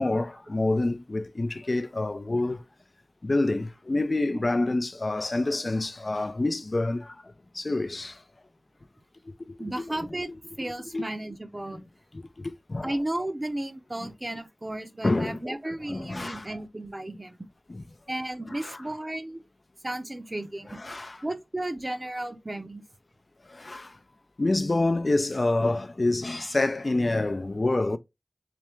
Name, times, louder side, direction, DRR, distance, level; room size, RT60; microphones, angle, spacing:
voice 1, 0.0-2.6 3.2-8.2 9.5-10.0 10.9-11.0 12.1-13.0 14.0-14.1 15.0-15.4 15.9-16.5 17.7-17.8 18.5-18.8 20.7-21.2 23.5-24.0 24.4-28.0, left 2 dB, 60° left, 0.4 m, -27 dB
voice 2, 9.6-10.3 10.6-11.8 12.8-17.4 18.1-19.4 19.8-20.8 21.2-22.8, right 1 dB, 35° right, 0.6 m, -34 dB
3.4 x 3.3 x 3.0 m
wide cardioid pair, 50°, 0 cm